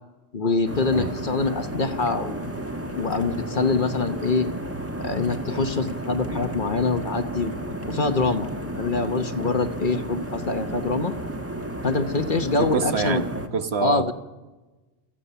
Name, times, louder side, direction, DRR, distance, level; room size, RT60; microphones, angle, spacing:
voice 1, 0.3-2.4 3.0-4.5 5.0-7.5 7.9-8.5 8.8-11.1 11.8-13.2 13.8-14.1, left 3 dB, 45° left, 9 dB, 1.2 m, -24 dB
sound 1, 0.6-13.5, right 1 dB, 10° right, 1.4 m, -32 dB
voice 2, 12.6-14.1, right 4 dB, 60° right, 9 dB, 1.4 m, -26 dB
27.5 x 15.0 x 6.9 m, 1.2 s
omnidirectional pair, 1.3 m